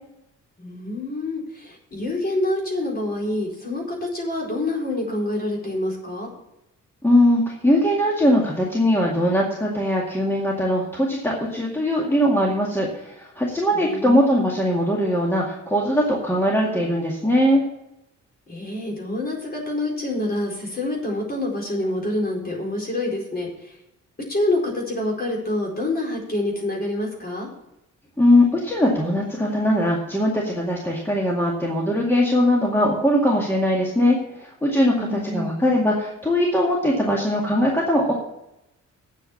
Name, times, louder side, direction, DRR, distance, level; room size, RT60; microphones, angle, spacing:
voice 1, 0.6-6.3 13.7-14.6 18.5-23.8 24.3-27.5 34.9-35.6, left 1 dB, 30° left, -1 dB, 4.4 m, -27 dB
voice 2, 7.0-17.6 28.2-38.1, left 1 dB, 10° left, -3 dB, 2.1 m, -20 dB
8.5 x 8.3 x 7.2 m, 0.86 s
wide cardioid pair, 130°, 30 cm